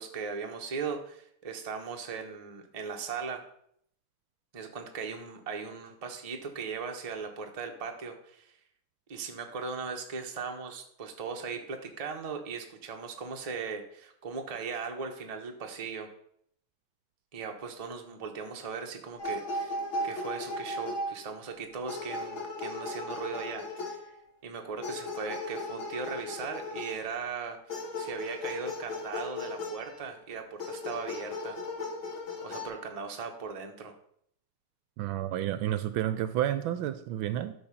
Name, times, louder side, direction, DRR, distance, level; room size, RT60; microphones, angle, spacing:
voice 1, 0.0-3.5 4.5-8.5 9.1-16.1 17.3-24.0 24.4-31.6 32.4-33.9, right 5 dB, 30° right, 3 dB, 0.6 m, -38 dB
sound 1, 19.2-21.5 21.9-24.2 24.8-27.1 27.7-30.1 30.6-32.7, left 2 dB, 65° left, 2.3 m, -37 dB
voice 2, 35.0-37.5, right 12 dB, 75° right, 12 dB, 1.3 m, -30 dB
12.0 x 4.2 x 5.7 m, 0.68 s
omnidirectional pair, 2.4 m